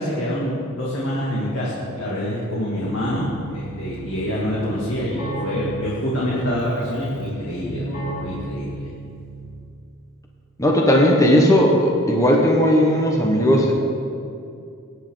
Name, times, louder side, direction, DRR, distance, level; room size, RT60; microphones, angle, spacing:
voice 1, 0.0-8.9, equal, 60° left, -7 dB, 2.6 m, -26 dB
Keyboard (musical), 2.8-9.6, right 2 dB, 40° left, 3.3 m, -34 dB
voice 2, 10.6-13.7, equal, 15° left, -1 dB, 1.3 m, -16 dB
21.5 x 9.8 x 4.0 m, 2.5 s
head